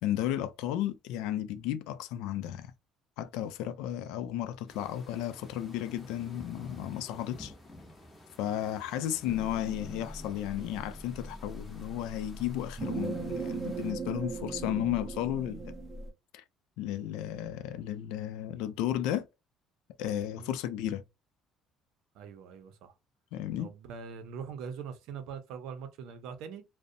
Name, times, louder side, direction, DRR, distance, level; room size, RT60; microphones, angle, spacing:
voice 1, 0.0-2.7 3.2-7.5 8.4-15.7 16.3-16.4 16.8-19.3 20.0-21.0 23.3-23.7, left 11 dB, 90° left, 0.3 m, -34 dB
sound 1, 4.7-13.9, left 1 dB, 15° left, 0.6 m, -52 dB
sound 2, 9.3-16.1, right 4 dB, 25° right, 0.6 m, -39 dB
voice 2, 22.1-22.9 23.6-26.6, right 6 dB, 70° right, 0.5 m, -42 dB
2.5 x 2.0 x 2.5 m
cardioid pair, 165°, 0 cm